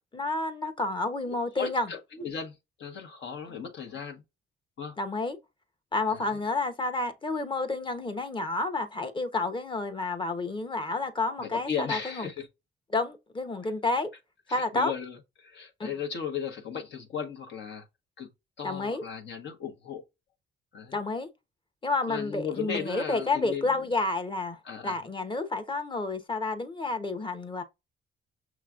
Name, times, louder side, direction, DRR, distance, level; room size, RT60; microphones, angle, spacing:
voice 1, 0.1-1.9 5.0-5.4 5.9-12.3 12.9-14.1 14.5-14.9 15.8-15.9 18.6-19.0 20.9-21.3 21.8-27.6, left 3 dB, 25° left, 0.9 m, -30 dB
voice 2, 1.3-4.2 4.8-5.0 6.1-6.4 11.4-12.5 13.6-13.7 14.5-17.9 18.2-18.3 18.6-20.0 20.7-21.0 22.1-23.9 24.6-25.0, left 7 dB, 65° left, 1.1 m, -36 dB
6.0 x 3.0 x 2.4 m
cardioid pair, 90°, 20 cm